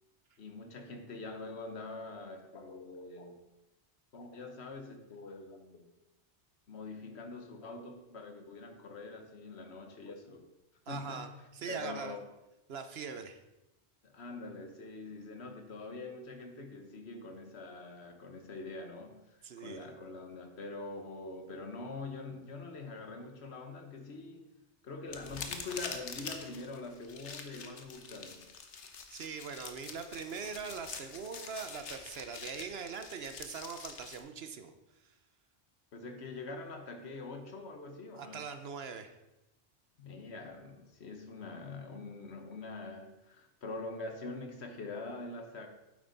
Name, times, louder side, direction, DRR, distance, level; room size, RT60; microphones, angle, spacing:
voice 1, 0.4-3.4 4.1-5.9 6.7-10.4 10.9-11.3 11.7-12.2 14.0-19.2 19.6-24.5 24.8-28.5 35.9-38.4 40.0-45.7, left 3 dB, 70° left, 5 dB, 1.4 m, -44 dB
voice 2, 10.9-12.2 12.7-13.4 19.4-19.9 29.1-34.7 35.0-35.1 38.1-39.1, right 6 dB, 65° right, 8 dB, 1.0 m, -42 dB
sound 1, 25.1-34.2, left 5 dB, 85° left, 1.3 m, -45 dB
9.7 x 8.0 x 4.0 m, 0.97 s
omnidirectional pair, 1.1 m